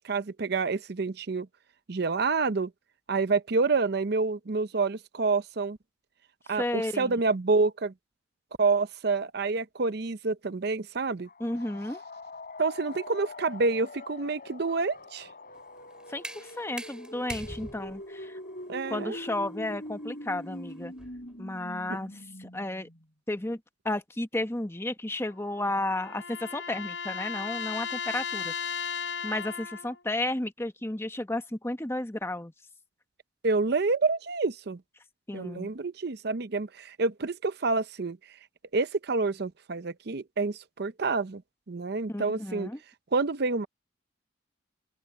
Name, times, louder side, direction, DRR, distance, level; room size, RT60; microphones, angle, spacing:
voice 1, 0.0-1.5 1.9-2.7 3.1-5.8 6.5-7.9 8.6-11.3 12.6-15.3 18.7-19.2 33.4-34.8 35.3-38.2 38.7-41.4 41.7-42.7 43.1-43.7, right 4 dB, 60° right, 0.7 m, -28 dB
voice 2, 6.5-7.1 11.4-12.0 16.1-18.4 18.9-20.9 21.4-22.1 22.4-22.9 23.3-23.6 23.8-28.5 29.2-32.5 35.3-35.7 42.1-42.8, left 1 dB, 15° left, 1.0 m, -33 dB
sound 1, 11.3-23.0, left 1 dB, 50° left, 5.8 m, -43 dB
sound 2, 15.5-21.3, right 1 dB, 5° right, 7.2 m, -45 dB
sound 3, 25.3-30.0, left 6 dB, 75° left, 5.2 m, -36 dB
open air
head